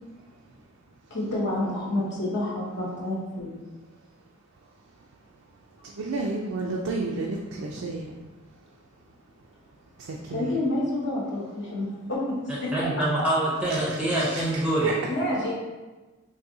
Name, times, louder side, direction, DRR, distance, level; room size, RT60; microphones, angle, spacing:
voice 1, 1.1-3.5 10.3-12.7 15.1-15.5, left 1 dB, 60° left, -4 dB, 0.9 m, -28 dB
voice 2, 1.6-2.0 5.8-8.1 10.0-10.5 14.2-14.4 14.8-14.9, right 3 dB, 90° right, -1 dB, 0.4 m, -31 dB
voice 3, 12.7-14.9, right 1 dB, 5° right, -7 dB, 0.5 m, -25 dB
3.9 x 2.7 x 2.7 m, 1.2 s
head